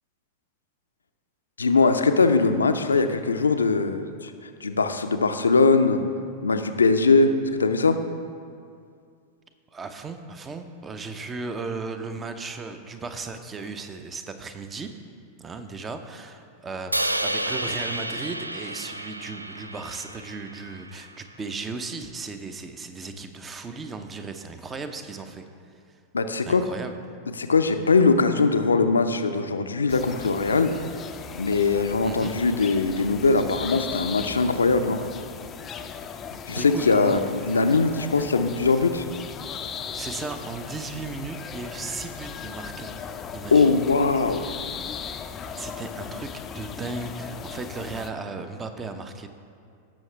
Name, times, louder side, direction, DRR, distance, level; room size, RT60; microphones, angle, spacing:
voice 1, 1.6-4.3 4.6-6.0 6.4-8.0 26.1-26.6 27.4-30.7 31.3-35.0 36.3-39.0 43.5-44.4, left 4 dB, 75° left, 8 dB, 0.6 m, -21 dB
voice 2, 9.7-14.9 15.4-25.4 26.4-27.0 32.0-32.3 35.6-35.7 36.5-37.2 39.9-43.0 43.3-43.8 45.6-46.3 46.5-49.3, right 4 dB, 20° right, 8 dB, 0.8 m, -36 dB
Crash cymbal, 16.9-21.1, right 1 dB, 85° right, 0.4 m, -31 dB
sound 1, 29.9-48.1, left 7 dB, 25° left, 0.5 m, -38 dB
18.0 x 6.3 x 3.3 m, 2.3 s
figure-of-eight pair, 90°, 0 cm